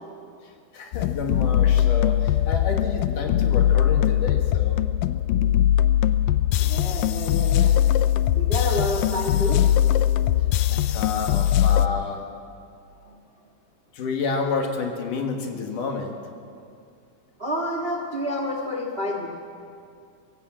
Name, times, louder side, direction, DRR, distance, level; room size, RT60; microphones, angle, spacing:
voice 1, 0.7-4.8 10.7-12.2 13.9-16.2, left 4 dB, 60° left, 3 dB, 2.9 m, -29 dB
sound 1, 0.9-11.9, left 11 dB, 85° left, 1.9 m, -21 dB
voice 2, 6.6-7.7 8.3-10.5 13.0-13.1 17.4-19.3, left 1 dB, 60° right, 1 dB, 0.6 m, -29 dB
23.0 x 16.0 x 7.5 m, 2.4 s
omnidirectional pair, 4.6 m